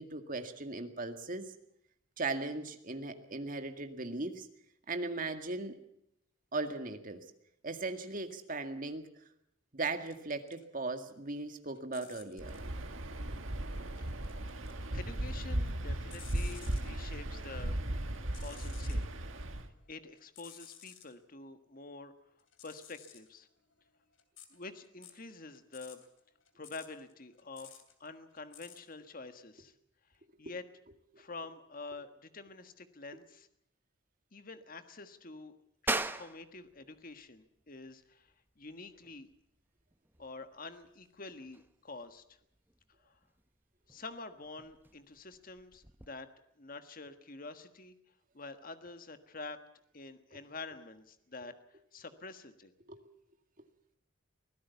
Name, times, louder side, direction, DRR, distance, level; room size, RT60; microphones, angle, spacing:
voice 1, 0.0-1.5 2.2-4.5 4.9-5.8 6.5-7.2 7.6-9.1 9.7-12.6 31.1-31.3 52.9-53.0, right 3 dB, 45° right, 7 dB, 2.0 m, -38 dB
sound 1, 10.1-10.7 11.0-12.7 14.0-14.9 15.2-16.9 18.1-19.1 19.5-21.1 22.4-28.9, left 10 dB, 80° left, 3.0 m, -55 dB
Waves surf, 12.4-19.7, right 1 dB, 85° right, 1.8 m, -37 dB
voice 2, 14.0-14.3 14.9-17.8 18.4-19.1 19.9-22.1 22.6-23.5 24.5-26.0 26.5-27.7 28.0-29.7 30.4-30.6 31.2-33.5 34.3-35.5 35.8-39.3 40.2-42.4 43.0-43.2 43.9-46.3 46.6-47.9 48.3-49.6 49.9-52.7, left 3 dB, 45° left, 9 dB, 1.5 m, -47 dB
sound 2, 35.9-46.1, right 2 dB, 10° right, 0.7 m, -43 dB
24.0 x 16.5 x 7.0 m, 0.77 s
head